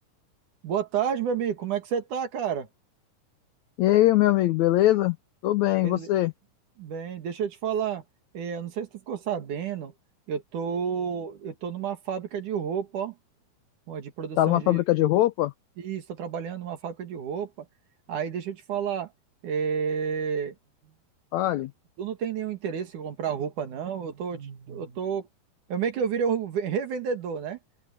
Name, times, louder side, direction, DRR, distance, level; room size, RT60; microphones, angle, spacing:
voice 1, 0.6-2.7 5.8-6.1 6.8-8.0 8.3-9.9 10.3-13.1 13.9-15.1 15.8-17.5 18.1-19.1 19.4-20.5 22.0-25.3 25.7-27.6, right 7 dB, 65° right, 3.3 m, -30 dB
voice 2, 3.8-5.2 5.4-6.3 14.4-15.5 21.3-21.7, left 15 dB, 85° left, 1.6 m, -21 dB
open air
omnidirectional pair, 4.1 m